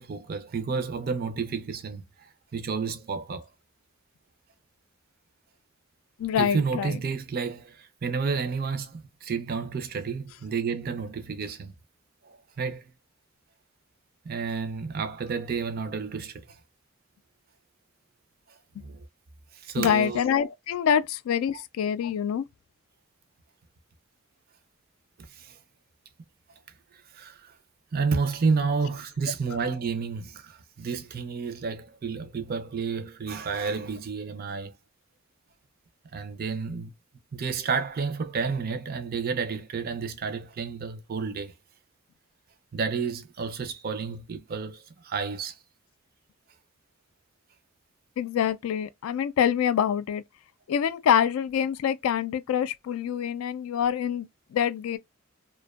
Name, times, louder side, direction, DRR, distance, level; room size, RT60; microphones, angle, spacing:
voice 1, 0.0-3.5 6.4-11.7 12.2-12.9 14.2-16.6 18.8-19.0 19.5-20.2 25.3-25.6 27.1-27.5 27.9-34.7 36.1-36.9 37.3-41.5 42.7-45.6, right 5 dB, 45° right, 0.4 m, -31 dB
voice 2, 6.2-7.0 19.8-22.4 48.2-50.2 50.7-55.0, left 8 dB, 85° left, 0.3 m, -25 dB
2.5 x 2.2 x 2.3 m
head